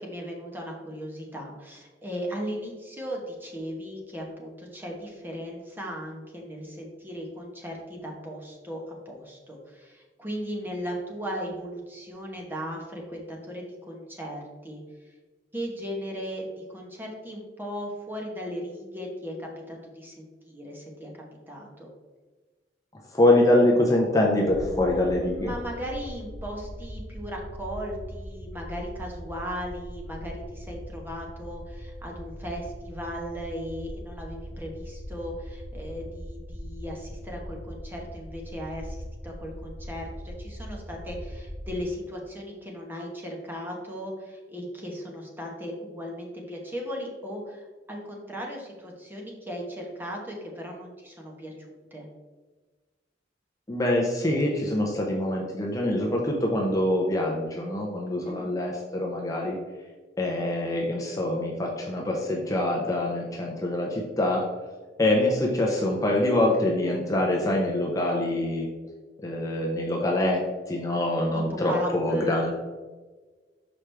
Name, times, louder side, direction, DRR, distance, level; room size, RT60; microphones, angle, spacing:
voice 1, 0.0-14.8 15.5-21.1 21.5-21.9 25.2-39.0 39.2-51.5 51.9-52.1 58.3-58.5 71.3-72.5, equal, 10° right, -1 dB, 1.1 m, -37 dB
voice 2, 23.1-25.5 53.7-59.6 60.2-64.4 65.0-68.7 69.2-72.5, left 1 dB, 20° left, -2 dB, 0.7 m, -24 dB
sound 1, 24.5-41.8, equal, 80° right, 1.0 m, -40 dB
6.1 x 4.8 x 3.3 m, 1.3 s
head